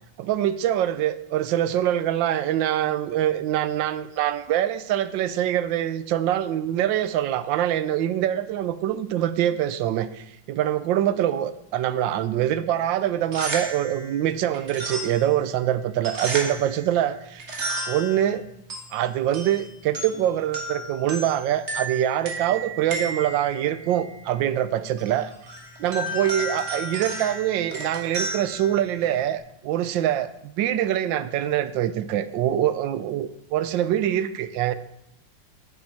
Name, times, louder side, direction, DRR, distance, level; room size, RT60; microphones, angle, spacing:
voice 1, 0.2-17.4 17.9-18.4 18.9-25.3 25.8-34.7, right 11 dB, 85° right, 13 dB, 1.4 m, -24 dB
sound 1, 13.1-29.4, right 2 dB, 40° right, 2.0 m, -34 dB
10.0 x 8.5 x 4.6 m, 0.78 s
omnidirectional pair, 2.0 m